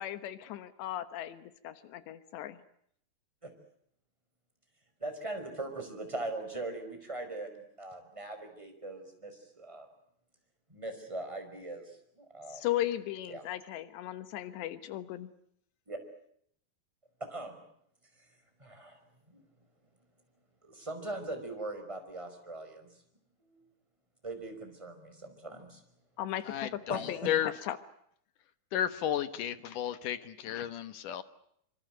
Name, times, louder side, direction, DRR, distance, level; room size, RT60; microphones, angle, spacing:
voice 1, 0.0-2.6 12.5-15.3 26.2-27.3 27.7-27.8, left 13 dB, 85° left, 12 dB, 3.5 m, -36 dB
voice 2, 5.0-9.9 10.7-12.6 13.3-13.5 15.9-16.0 17.3-17.6 18.2-18.3 18.6-19.0 20.7-22.9 23.4-23.6 24.2-25.8 26.9-27.3, right 2 dB, 5° right, 5 dB, 5.2 m, -41 dB
voice 3, 26.4-27.5 28.7-31.2, left 10 dB, 65° left, 12 dB, 2.3 m, -33 dB
26.0 x 25.5 x 7.8 m, 0.70 s
omnidirectional pair, 4.9 m